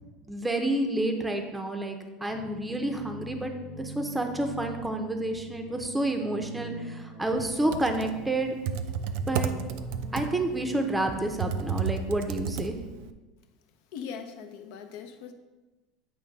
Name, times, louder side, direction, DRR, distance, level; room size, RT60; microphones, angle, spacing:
voice 1, 0.3-3.5 3.8-8.5 9.3-9.5 10.1-12.8, right 1 dB, 5° right, 4 dB, 0.6 m, -29 dB
sound 1, 2.3-11.4, right 1 dB, 35° left, 1.1 m, -44 dB
Computer keyboard, 7.5-13.1, right 7 dB, 65° right, 0.4 m, -32 dB
voice 2, 13.9-15.3, left 7 dB, 70° left, 6 dB, 0.7 m, -40 dB
8.6 x 3.2 x 5.2 m, 1.2 s
supercardioid pair, 150°, 0 cm